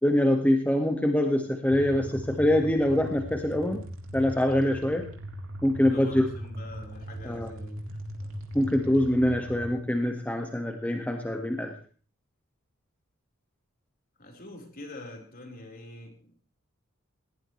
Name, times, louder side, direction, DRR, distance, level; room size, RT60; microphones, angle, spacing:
voice 1, 0.0-3.8 4.1-5.1 5.6-6.3 7.2-7.5 8.5-11.7, left 1 dB, 10° left, 3 dB, 1.7 m, -24 dB
sound 1, 1.7-9.7, equal, 70° right, 3.8 m, -39 dB
voice 2, 5.9-7.8 8.2-8.3 8.8-9.1 14.2-16.3, left 1 dB, 45° left, 2 dB, 4.4 m, -45 dB
20.5 x 18.5 x 3.3 m, 0.39 s
head